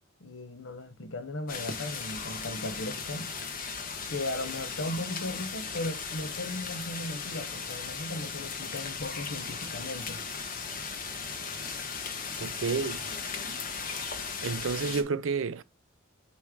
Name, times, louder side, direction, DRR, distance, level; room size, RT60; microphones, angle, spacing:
voice 1, 0.2-3.3 4.1-10.2, left 1 dB, 65° left, 0.9 m, -37 dB
sound 1, 1.5-15.0, left 5 dB, 45° left, 1.1 m, -37 dB
voice 2, 12.4-13.0 14.4-15.6, right 5 dB, 70° right, 0.5 m, -30 dB
8.3 x 3.1 x 4.9 m
head